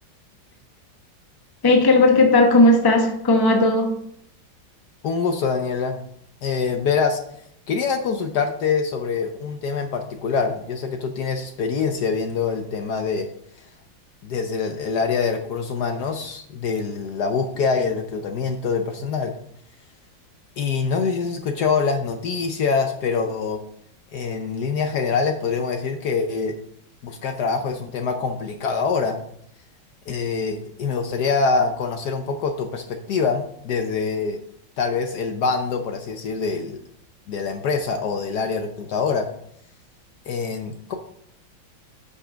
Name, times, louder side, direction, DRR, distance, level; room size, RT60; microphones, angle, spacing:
voice 1, 1.6-4.0, left 2 dB, 20° left, 0.7 m, -16 dB
voice 2, 5.0-6.0 6.4-7.2 7.7-13.3 14.2-19.3 20.6-23.6 24.1-26.5 27.0-29.2 30.1-34.4 34.8-36.8 37.3-39.3 40.3-41.0, left 5 dB, 65° left, 1.1 m, -24 dB
8.6 x 5.5 x 5.0 m
omnidirectional pair, 2.2 m